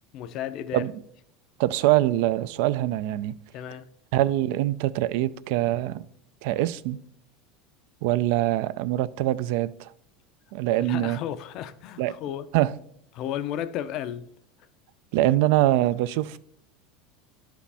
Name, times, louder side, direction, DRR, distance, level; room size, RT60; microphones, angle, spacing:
voice 1, 0.1-0.8 3.5-3.9 10.8-12.5 13.1-14.3, left 10 dB, 50° left, 0.5 m, -33 dB
voice 2, 1.6-3.3 4.1-6.0 6.4-7.0 8.0-9.9 10.5-11.2 12.0-12.1 12.5-12.7 15.1-16.4, right 15 dB, 65° right, 0.3 m, -24 dB
10.0 x 4.9 x 3.4 m
supercardioid pair, 140°, 0 cm